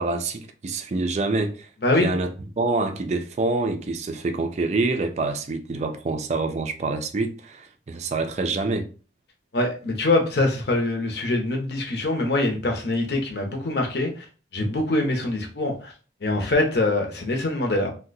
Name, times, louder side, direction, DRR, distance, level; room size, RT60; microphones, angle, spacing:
voice 1, 0.0-1.7 2.0-8.9, right 3 dB, 35° right, 0.3 m, -26 dB
voice 2, 9.5-14.2 14.5-15.9 16.2-17.9, left 2 dB, 60° left, 0.8 m, -24 dB
2.7 x 2.2 x 3.9 m
head